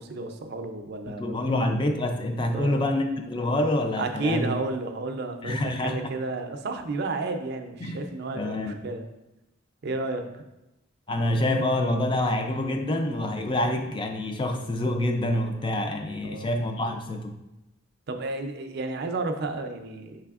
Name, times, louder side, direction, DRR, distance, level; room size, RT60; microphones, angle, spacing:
voice 1, 0.0-1.5 2.5-2.8 4.0-9.0 9.8-10.4 16.2-16.5 18.1-20.2, right 3 dB, 50° right, 6 dB, 0.4 m, -32 dB
voice 2, 1.2-4.5 5.4-6.0 7.8-8.0 8.4-8.8 11.1-17.3, left 1 dB, 25° left, 5 dB, 0.3 m, -26 dB
6.1 x 3.3 x 2.4 m, 0.95 s
head